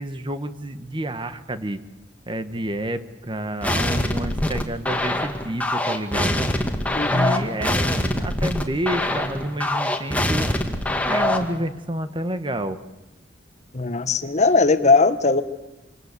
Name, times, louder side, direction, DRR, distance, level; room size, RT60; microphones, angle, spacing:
voice 1, 0.0-1.8 2.3-6.5 7.1-10.5 11.0-12.8, right 1 dB, 25° right, 10 dB, 1.3 m, -29 dB
sound 1, 3.6-11.6, left 1 dB, 10° left, 2.2 m, -24 dB
voice 2, 6.9-7.4 13.7-15.4, left 3 dB, 40° left, 11 dB, 1.3 m, -19 dB
27.0 x 25.5 x 8.3 m, 1.0 s
head